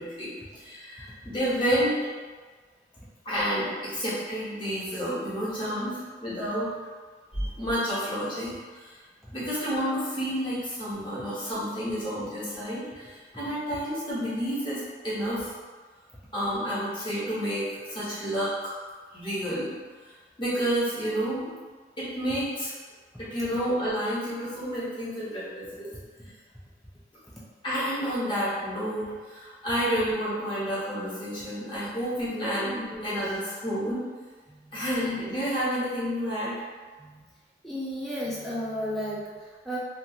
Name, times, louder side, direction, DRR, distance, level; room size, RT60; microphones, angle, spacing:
voice 1, 0.0-2.0 3.2-6.7 7.3-9.0 9.3-15.5 16.3-18.8 19.1-19.7 20.0-20.1 20.4-21.5 22.0-22.7 23.2-25.9 27.6-34.0 34.7-36.5, equal, 25° left, -11 dB, 1.0 m, -30 dB
voice 2, 32.6-33.1 34.5-34.9 37.0-37.2 37.6-39.8, equal, ahead, -7 dB, 0.3 m, -34 dB
2.6 x 2.4 x 2.6 m, 1.5 s
head